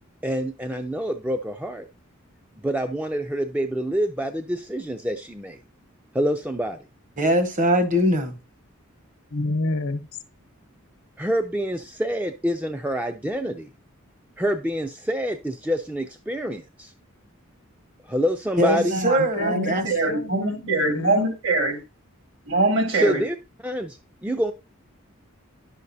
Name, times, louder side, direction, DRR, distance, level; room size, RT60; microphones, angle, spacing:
voice 1, 0.2-1.9 2.6-5.6 6.1-6.8 11.2-13.7 14.4-16.9 18.0-19.0 23.0-23.4 23.6-24.5, equal, 5° right, 0.3 m, -26 dB
voice 2, 7.2-8.4 18.6-19.8, equal, 35° right, 0.9 m, -21 dB
voice 3, 9.3-10.1 19.4-21.3, left 2 dB, 90° left, 0.8 m, -29 dB
voice 4, 18.7-21.8 22.5-23.2, right 2 dB, 60° right, 1.7 m, -23 dB
10.5 x 6.5 x 2.7 m
head